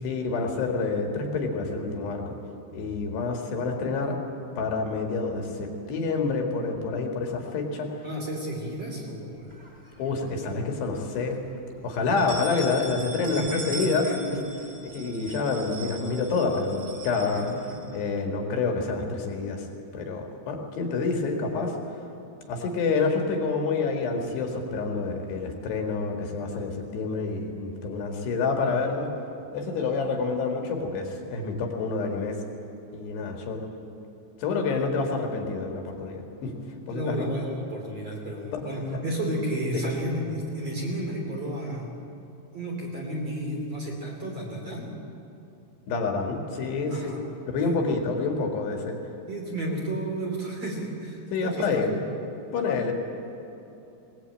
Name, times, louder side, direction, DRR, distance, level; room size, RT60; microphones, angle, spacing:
voice 1, 0.0-2.4 2.7-4.2 4.6-7.9 10.0-11.4 11.8-14.1 14.8-19.7 19.9-21.8 22.5-29.1 29.5-32.4 32.9-33.6 34.4-36.6 36.9-37.3 38.5-38.6 39.7-39.8 45.9-47.0 47.5-49.0 51.3-51.9 52.5-52.9, left 4 dB, 65° left, 2 dB, 3.6 m, -28 dB
voice 2, 8.0-9.5 13.4-13.7 14.0-14.2 17.3-17.4 17.7-17.8 36.9-41.9 42.5-44.9 46.9-47.2 47.6-47.8 49.3-52.0, right 1 dB, 40° right, -1 dB, 3.3 m, -32 dB
sound 1, 9.5-10.4 10.8-10.9 11.3-11.4 12.0-18.2, right 3 dB, 15° right, 4.0 m, -40 dB
21.0 x 19.5 x 8.7 m, 3.0 s
omnidirectional pair, 5.6 m